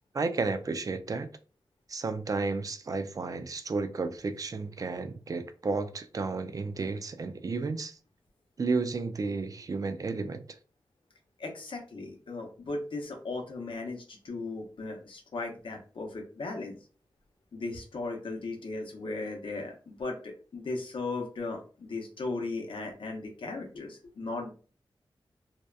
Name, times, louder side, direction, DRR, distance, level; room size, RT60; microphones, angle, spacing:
voice 1, 0.1-1.3 1.9-8.0 8.6-10.4, right 4 dB, 40° right, 0.3 m, -32 dB
voice 2, 11.4-16.8 17.5-24.5, left 3 dB, 75° left, 0.6 m, -37 dB
2.8 x 2.1 x 2.3 m
wide cardioid pair, 75°, 9 cm